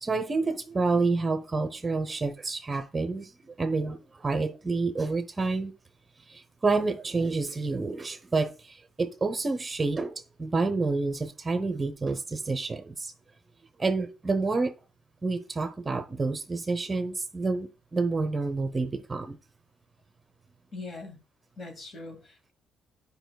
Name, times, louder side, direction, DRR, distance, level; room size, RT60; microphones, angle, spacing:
voice 1, 0.0-5.7 6.3-13.1 13.8-14.7 15.2-19.4, right 3 dB, 30° right, 0.8 m, -29 dB
voice 2, 20.7-21.2 21.6-22.5, left 3 dB, 45° left, 1.9 m, -41 dB
9.0 x 5.3 x 2.2 m
cardioid pair, 90°, 0 cm